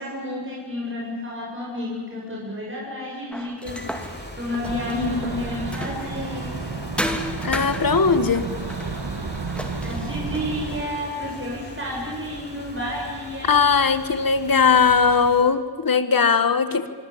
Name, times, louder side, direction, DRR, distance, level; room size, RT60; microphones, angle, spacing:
voice 1, 0.0-6.5 9.8-13.6, left 1 dB, 30° right, -4 dB, 7.4 m, -31 dB
sound 1, 3.3-6.3 7.0-10.8, equal, 5° left, 2.8 m, -34 dB
sound 2, 3.6-15.4, left 1 dB, 25° left, 4.7 m, -39 dB
sound 3, 4.6-10.8, right 5 dB, 65° right, 1.8 m, -32 dB
voice 2, 4.9-5.4 7.4-8.5 13.5-16.9, left 5 dB, 55° left, 11 dB, 1.6 m, -19 dB
26.0 x 24.5 x 8.7 m, 1.5 s
wide cardioid pair, 60°, 42 cm